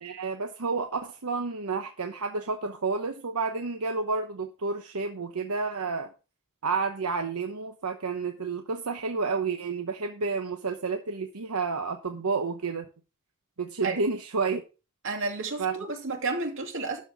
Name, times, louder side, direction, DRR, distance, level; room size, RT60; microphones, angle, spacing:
voice 1, 0.0-6.1 6.6-12.8 13.6-14.6 15.6-15.9, right 4 dB, 85° right, 1.0 m, -30 dB
voice 2, 15.0-17.0, right 3 dB, 60° right, 2.6 m, -31 dB
12.5 x 4.4 x 7.2 m
head